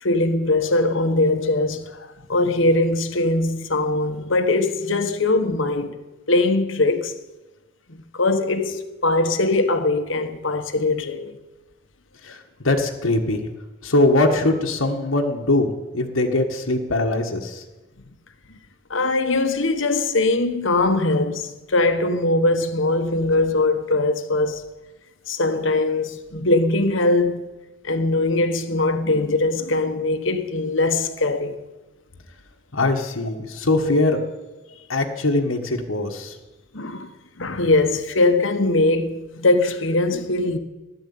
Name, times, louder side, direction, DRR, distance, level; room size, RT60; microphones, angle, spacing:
voice 1, 0.0-6.0 6.3-7.1 8.1-11.3 18.9-24.6 25.3-27.5 27.8-31.6 36.7-37.1 37.4-40.6, left 2 dB, 70° left, 1.3 m, -21 dB
voice 2, 12.6-13.5 13.8-17.6 32.7-34.2 34.9-36.3, left 2 dB, 85° left, 1.6 m, -21 dB
14.0 x 11.5 x 8.6 m
head